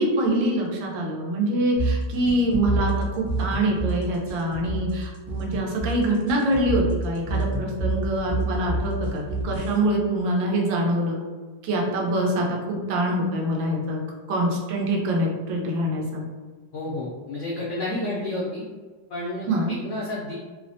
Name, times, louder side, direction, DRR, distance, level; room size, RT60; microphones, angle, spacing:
voice 1, 0.0-11.2 11.6-14.0 14.3-16.2 19.5-19.7, right 1 dB, 85° right, -1 dB, 1.4 m, -25 dB
sound 1, 1.8-9.8, right 2 dB, 65° right, 0.7 m, -28 dB
voice 2, 16.7-18.6 19.1-20.3, left 1 dB, 85° left, -6 dB, 0.6 m, -30 dB
3.2 x 2.1 x 2.6 m, 1.4 s
omnidirectional pair, 2.0 m